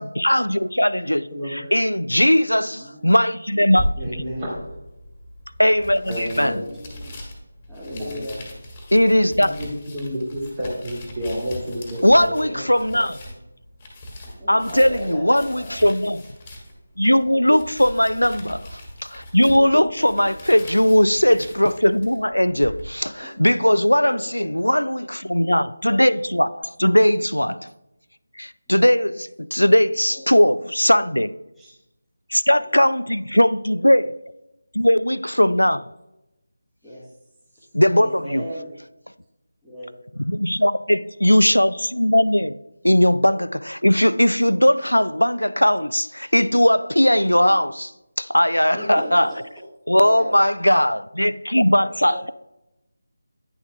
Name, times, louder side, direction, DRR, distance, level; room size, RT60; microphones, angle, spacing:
voice 1, 0.0-4.2 5.6-6.6 8.9-9.5 12.0-13.1 14.5-16.2 17.0-27.7 28.4-31.3 32.3-34.2 34.7-35.8 37.7-38.5 40.2-42.6 42.8-47.9 48.2-49.3 49.9-52.3, equal, 85° left, 0.3 m, -19 dB
voice 2, 1.1-1.7 4.0-4.5 6.1-6.6 7.9-8.2 9.4-12.3, equal, 25° right, 2.1 m, -30 dB
sound 1, 3.7-22.8, left 1 dB, 20° left, 1.6 m, -37 dB
voice 3, 6.1-7.2 7.7-8.4 12.4-13.0 14.2-15.8 20.0-20.2 23.2-23.3 24.0-24.4 30.1-30.2 31.6-31.8 32.5-32.6 36.8-37.1 37.9-38.7 39.6-39.9 40.2-40.3 47.3-47.4 48.7-49.4 49.9-50.3 51.8-52.3, equal, 5° right, 1.4 m, -37 dB
10.0 x 7.0 x 2.3 m
figure-of-eight pair, 160°, 0 cm